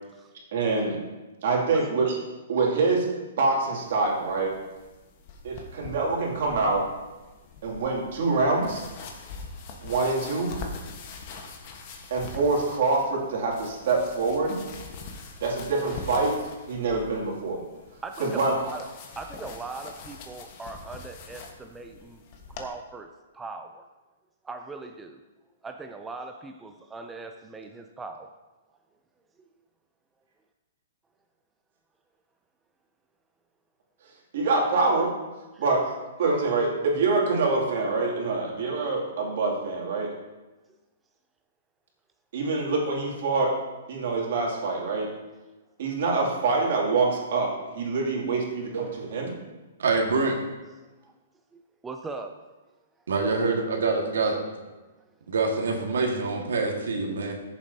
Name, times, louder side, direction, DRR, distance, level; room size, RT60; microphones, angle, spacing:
voice 1, 0.5-1.0 1.4-2.2 2.5-3.1 3.4-4.5 5.4-6.8 7.6-8.8 9.8-10.5 12.1-14.6 15.4-16.4 16.7-17.6 18.2-18.6 34.3-35.1 35.6-35.8 36.2-40.1 42.3-43.5 43.9-45.1 45.8-48.9 49.1-49.3, right 3 dB, 55° right, -1 dB, 2.4 m, -25 dB
sound 1, 3.9-22.7, left 4 dB, 35° left, 1.1 m, -43 dB
voice 2, 18.0-18.9 19.2-22.2 22.6-23.9 24.4-25.2 25.6-28.3 35.5-35.6 51.0-51.1 51.5-52.4, right 3 dB, 10° right, 4 dB, 0.4 m, -40 dB
voice 3, 49.8-50.4 53.1-54.4 55.3-57.3, right 3 dB, 90° right, 1 dB, 1.6 m, -25 dB
14.5 x 7.1 x 2.7 m, 1.1 s
hypercardioid pair, 160°, 0 cm